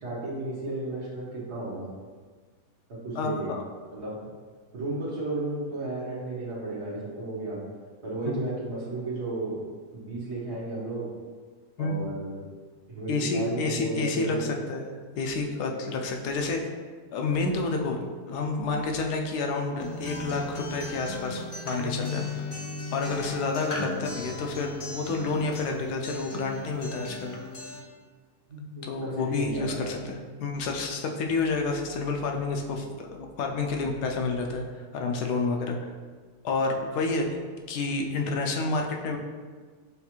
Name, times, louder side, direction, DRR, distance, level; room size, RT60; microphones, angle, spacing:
voice 1, 0.0-1.9 2.9-3.5 3.9-4.2 4.7-7.6 8.0-9.6 9.9-11.1 11.8-12.4 12.9-14.5 28.5-29.9, right 2 dB, 80° right, -6 dB, 1.8 m, -33 dB
voice 2, 3.1-3.6 8.2-8.5 11.8-12.1 13.1-14.9 15.2-16.6 17.1-18.0 18.2-22.3 22.9-27.4 28.8-35.9 36.4-37.3 37.7-39.2, left 3 dB, 85° left, 2 dB, 1.2 m, -29 dB
Acoustic guitar, 19.8-27.8, left 3 dB, 50° left, 0.3 m, -36 dB
6.8 x 2.4 x 2.9 m, 1.5 s
omnidirectional pair, 1.7 m